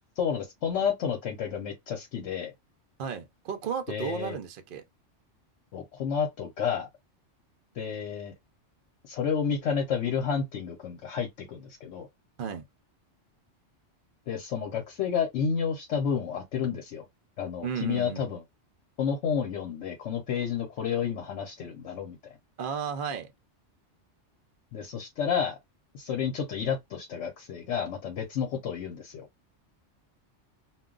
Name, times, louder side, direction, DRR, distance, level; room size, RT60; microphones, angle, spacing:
voice 1, 0.2-2.5 3.9-4.4 5.7-6.9 7.7-8.3 9.0-12.1 14.3-17.0 17.4-18.4 19.0-22.2 24.7-25.6 25.9-29.3, left 7 dB, 75° left, 1.0 m, -30 dB
voice 2, 3.0-4.8 12.4-12.6 17.6-18.3 22.6-23.3, right 7 dB, 55° right, 0.7 m, -34 dB
2.3 x 2.2 x 3.7 m
omnidirectional pair, 1.2 m